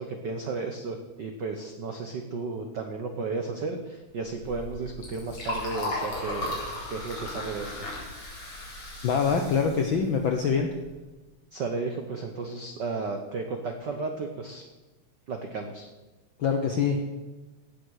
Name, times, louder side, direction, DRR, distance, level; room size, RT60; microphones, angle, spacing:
voice 1, 0.0-6.6 6.9-7.9 11.5-14.6 15.3-15.9, right 4 dB, 80° right, 5 dB, 0.9 m, -33 dB
Liquid, 4.2-10.9, left 2 dB, 45° left, 4.5 m, -36 dB
voice 2, 9.0-10.7 16.4-17.1, left 6 dB, 70° left, 4 dB, 1.1 m, -25 dB
17.0 x 7.2 x 6.4 m, 1.2 s
omnidirectional pair, 3.5 m